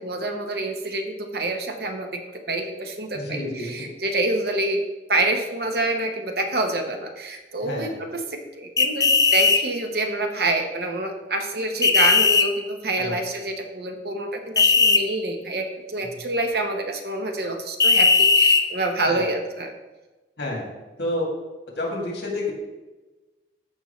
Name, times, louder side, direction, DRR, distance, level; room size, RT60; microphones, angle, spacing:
voice 1, 0.0-4.8 5.1-19.7, right 2 dB, 60° right, 4 dB, 1.0 m, -27 dB
voice 2, 3.1-3.9 7.6-7.9 13.0-13.2 16.0-16.2 19.0-19.3 20.4-20.6 21.0-21.3 21.8-22.5, left 2 dB, 70° left, -1 dB, 2.4 m, -29 dB
sound 1, 8.8-9.6 11.8-12.5 14.6-15.0 17.8-18.6, left 4 dB, 20° left, 0.4 m, -17 dB
14.0 x 5.4 x 3.2 m, 1.1 s
head